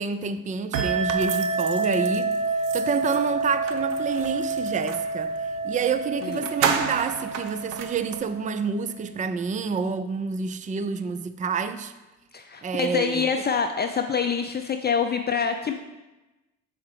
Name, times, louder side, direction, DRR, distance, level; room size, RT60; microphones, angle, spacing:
voice 1, 0.0-2.4 2.7-5.3 5.6-11.9 12.6-13.3, right 5 dB, 20° right, 11 dB, 0.5 m, -28 dB
sound 1, 0.7-8.9, right 3 dB, 65° right, 0.9 m, -28 dB
sound 2, 1.1-5.1 5.8-5.9 6.2-8.2, right 6 dB, 90° right, 0.6 m, -32 dB
voice 2, 12.3-15.7, left 6 dB, 30° left, 5 dB, 0.5 m, -26 dB
6.4 x 4.7 x 4.8 m, 1.1 s
hypercardioid pair, 50°, 35 cm